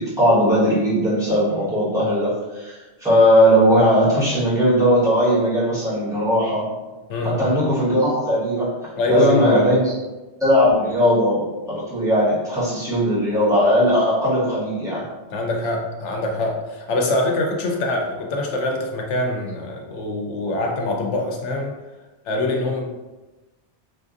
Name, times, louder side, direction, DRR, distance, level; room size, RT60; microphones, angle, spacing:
voice 1, 0.0-6.6 7.2-8.7 9.1-9.8 10.4-15.0, equal, 5° right, -10 dB, 1.3 m, -18 dB
voice 2, 7.1-7.4 9.0-9.6 15.3-21.7 22.2-22.8, left 2 dB, 85° left, 1 dB, 1.0 m, -24 dB
4.2 x 2.5 x 2.5 m, 1.1 s
omnidirectional pair, 1.2 m